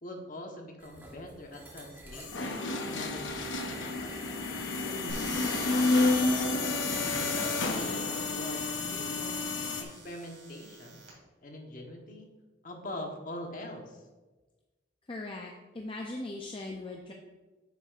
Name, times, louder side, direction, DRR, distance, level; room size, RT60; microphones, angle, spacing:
voice 1, 0.0-2.6 2.9-4.3 4.7-6.3 7.2-9.5 9.8-11.0 11.4-12.3 12.6-14.0, left 1 dB, 45° left, 2 dB, 1.1 m, -43 dB
sound 1, 0.8-7.8, right 1 dB, 10° right, 1.2 m, -51 dB
sound 2, 2.1-9.8, left 3 dB, 85° left, 0.9 m, -30 dB
sound 3, 5.1-11.1, right 2 dB, 40° right, 2.4 m, -46 dB
voice 2, 15.1-17.1, left 2 dB, 30° left, 1 dB, 0.5 m, -39 dB
9.3 x 6.9 x 2.5 m, 1.2 s
head